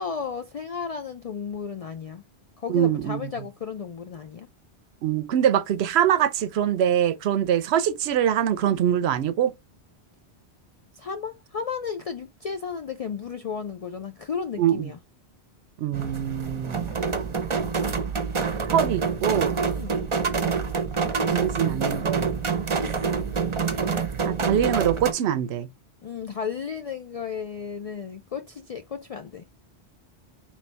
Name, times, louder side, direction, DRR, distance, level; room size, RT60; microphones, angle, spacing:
voice 1, 0.0-2.2 2.6-4.5 10.9-15.0 19.7-20.1 26.0-29.5, left 6 dB, 60° left, 0.3 m, -34 dB
voice 2, 2.7-3.2 5.0-9.5 14.6-14.9 15.8-16.9 18.7-19.5 21.3-22.3 24.3-25.7, right 10 dB, 75° right, 0.8 m, -23 dB
sound 1, 15.9-25.1, right 5 dB, 35° right, 0.6 m, -26 dB
4.2 x 3.1 x 3.3 m
omnidirectional pair, 1.1 m